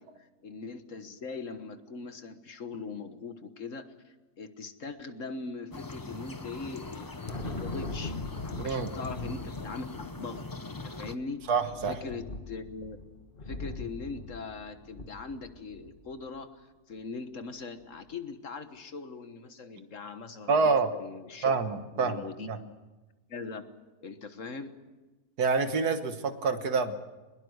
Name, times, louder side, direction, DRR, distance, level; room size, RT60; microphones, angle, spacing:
voice 1, 0.0-8.2 8.4-11.4 11.9-13.0 13.4-16.6 16.9-21.6 21.9-22.7 23.3-23.6 24.0-24.7, left 4 dB, 55° left, 9 dB, 1.7 m, -41 dB
sound 1, 5.7-11.2, left 3 dB, 20° left, 0.6 m, -42 dB
Thunder, 6.7-16.1, left 2 dB, 35° left, 2.0 m, -41 dB
voice 2, 8.6-8.9 11.5-12.0 20.5-20.9 21.4-22.6 25.4-27.0, right 4 dB, 80° right, 9 dB, 1.9 m, -27 dB
22.0 x 21.0 x 8.0 m, 1.2 s
omnidirectional pair, 1.6 m